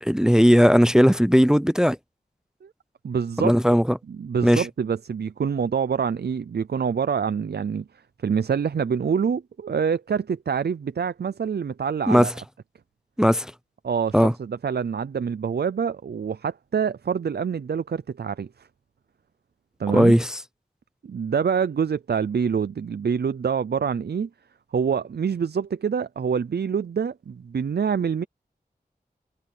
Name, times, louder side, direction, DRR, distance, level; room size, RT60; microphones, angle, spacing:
voice 1, 0.0-2.0 3.4-4.0 4.4-4.6 12.1-12.3 13.2-13.5 14.1-14.3 19.9-20.4, equal, 5° right, 0.5 m, -17 dB
voice 2, 3.0-3.5 4.1-7.8 8.2-12.3 13.8-18.5 19.8-20.1 21.0-24.3 24.7-28.2, right 6 dB, 90° right, 0.5 m, -26 dB
wide cardioid pair, 50°, 16 cm